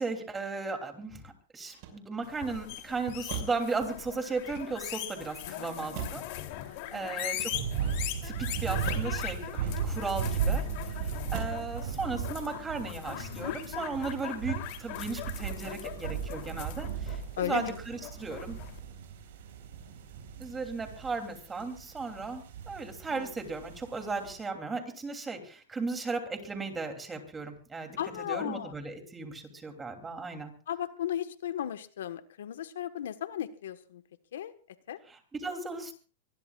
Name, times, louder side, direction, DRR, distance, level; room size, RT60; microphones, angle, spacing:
voice 1, 0.0-6.2 6.7-7.5 8.2-18.6 20.4-28.0 28.3-30.5 35.1-35.9, right 4 dB, 10° right, 5 dB, 3.0 m, -36 dB
Motor vehicle (road), 1.6-2.4 3.2-3.7 4.4-5.1 5.9-6.4 7.2-7.9 8.8-9.2 10.1-10.7 11.3-11.7 12.1-12.5, right 7 dB, 45° right, 5.8 m, -41 dB
sound 1, 2.3-18.8, left 13 dB, 45° left, 3.1 m, -40 dB
voice 2, 5.4-7.1 13.3-13.5 17.4-17.8 23.1-23.3 28.0-28.7 30.7-34.0 34.3-34.5 34.9-35.0, left 10 dB, 80° left, 10 dB, 1.4 m, -36 dB
sound 2, 7.5-24.4, right 7 dB, 65° right, 6.7 m, -36 dB
24.0 x 20.5 x 2.4 m, 0.39 s
supercardioid pair, 155°, 0 cm